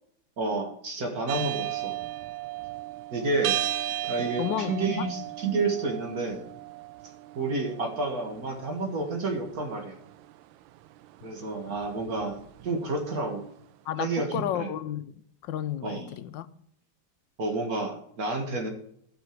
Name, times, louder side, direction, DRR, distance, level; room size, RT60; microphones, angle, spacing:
voice 1, 0.4-2.0 3.1-3.6 4.0-6.5 7.4-10.0 11.2-13.5 14.0-14.7 15.8-16.1 17.4-18.7, right 3 dB, 50° right, 2.1 m, -30 dB
sound 1, 1.3-13.4, right 14 dB, 85° right, 1.3 m, -36 dB
voice 2, 4.4-5.1 13.9-16.5, left 11 dB, 75° left, 1.3 m, -32 dB
14.0 x 5.9 x 4.6 m
omnidirectional pair, 2.1 m